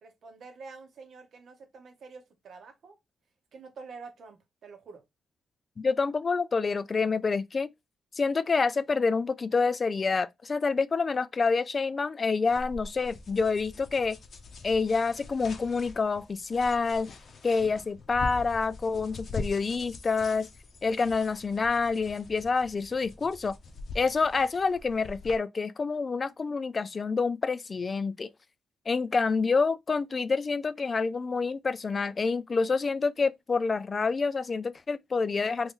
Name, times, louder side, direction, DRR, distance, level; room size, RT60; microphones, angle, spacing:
voice 1, 0.0-3.0 3.5-5.0, right 4 dB, 65° right, 0.8 m, -47 dB
voice 2, 5.8-7.7 8.1-14.2 14.6-17.1 17.4-20.5 20.8-23.6 23.9-28.3 28.9-35.7, left 4 dB, 40° left, 0.3 m, -27 dB
sound 1, 12.5-25.4, left 3 dB, 60° left, 0.7 m, -43 dB
3.0 x 2.6 x 3.6 m
cardioid pair, 75°, 0 cm